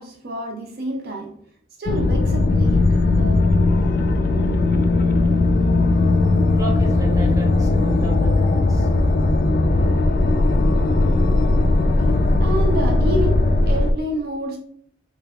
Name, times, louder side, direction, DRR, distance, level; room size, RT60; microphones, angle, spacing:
voice 1, 0.0-1.3 1.8-2.9 3.2-3.5 12.4-14.6, right 1 dB, 55° right, 0.5 m, -28 dB
sound 1, 1.9-13.9, left 2 dB, 50° left, 0.3 m, -18 dB
voice 2, 6.5-8.9, right 2 dB, 15° right, 0.7 m, -33 dB
3.4 x 3.3 x 2.3 m
head